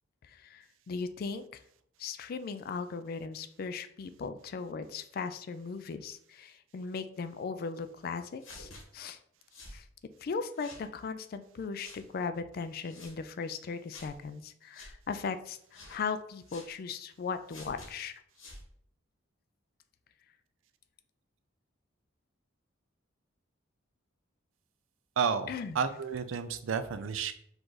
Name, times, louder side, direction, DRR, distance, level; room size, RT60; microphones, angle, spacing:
voice 1, 0.2-1.4 2.0-9.2 9.7-9.9 10.2-18.2 25.5-26.0, left 5 dB, 50° left, 11 dB, 0.3 m, -38 dB
sound 1, 8.4-8.8 9.5-9.8 10.5-10.9 11.8-12.0 12.8-13.1 13.9-14.1 14.7-14.9 15.7-16.0 16.5-16.7 17.5-17.9 18.3-18.6, left 2 dB, 80° left, 1.3 m, -49 dB
voice 2, 25.2-25.5 25.7-27.3, right 6 dB, 80° right, 11 dB, 0.4 m, -31 dB
4.7 x 2.5 x 3.9 m, 0.67 s
head